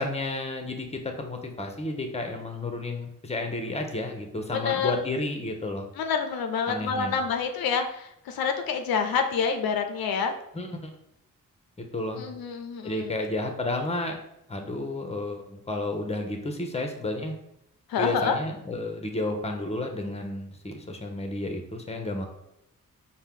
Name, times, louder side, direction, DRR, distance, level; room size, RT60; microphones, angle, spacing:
voice 1, 0.0-5.9 6.7-7.1 10.5-10.9 11.8-12.2 12.8-14.2 14.5-17.3 18.0-22.3, left 2 dB, 20° left, 4 dB, 0.8 m, -31 dB
voice 2, 4.5-5.0 6.0-10.3 12.1-13.1 17.9-18.4, left 6 dB, 85° left, 6 dB, 0.5 m, -27 dB
4.3 x 2.2 x 3.6 m, 0.80 s
cardioid pair, 50°, 35 cm